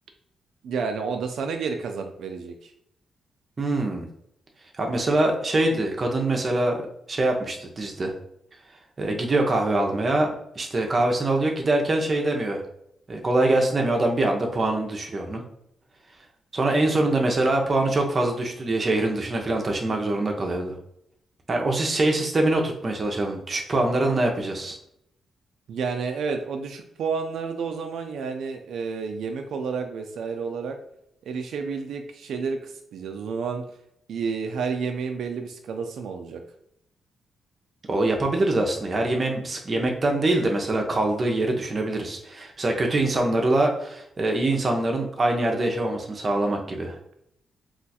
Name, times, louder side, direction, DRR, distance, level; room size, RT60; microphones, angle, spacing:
voice 1, 0.6-2.7 25.7-30.8 31.3-33.7 34.1-36.4, right 5 dB, 80° right, 5 dB, 0.3 m, -30 dB
voice 2, 3.6-4.1 4.8-6.8 7.1-8.1 9.0-10.3 10.6-12.6 13.1-15.4 16.5-20.7 21.5-24.8 37.9-47.0, right 2 dB, 30° right, 2 dB, 0.5 m, -24 dB
2.4 x 2.3 x 4.0 m, 0.74 s
cardioid pair, 135°, 0 cm